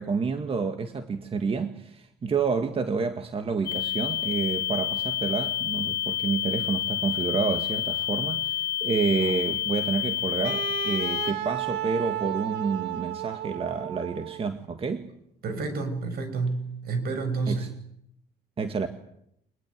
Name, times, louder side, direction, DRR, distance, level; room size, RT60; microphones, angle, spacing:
voice 1, 0.0-15.1 17.5-17.7 18.6-18.9, right 5 dB, 35° right, 7 dB, 1.9 m, -29 dB
sound 1, 3.7-11.3, left 12 dB, 75° left, 1.1 m, -29 dB
Wind instrument woodwind instrument, 10.4-14.5, right 13 dB, 90° right, 1.5 m, -33 dB
voice 2, 15.4-17.7, right 4 dB, 65° right, 9 dB, 6.5 m, -29 dB
23.5 x 20.5 x 9.5 m, 0.74 s
cardioid pair, 110°, 17 cm